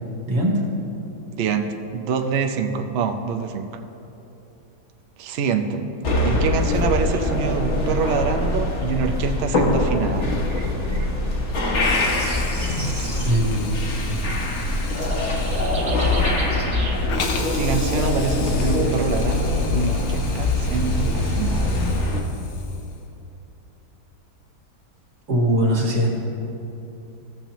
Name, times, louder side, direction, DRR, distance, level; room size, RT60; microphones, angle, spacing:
voice 1, 0.3-0.6 13.2-13.8 25.3-26.1, right 1 dB, 65° right, -2 dB, 2.1 m, -20 dB
voice 2, 1.3-1.7 1.9-3.7 5.2-5.8 6.2-10.3 17.5-21.7, right 5 dB, 80° right, 6 dB, 0.5 m, -25 dB
sound 1, 6.0-22.2, left 2 dB, 45° left, 1.2 m, -23 dB
sound 2, 6.6-17.4, right 2 dB, 45° right, 2.3 m, -37 dB
Hiss, 11.8-23.1, left 4 dB, 75° left, 1.5 m, -37 dB
15.5 x 7.1 x 3.0 m, 2.9 s
omnidirectional pair, 1.9 m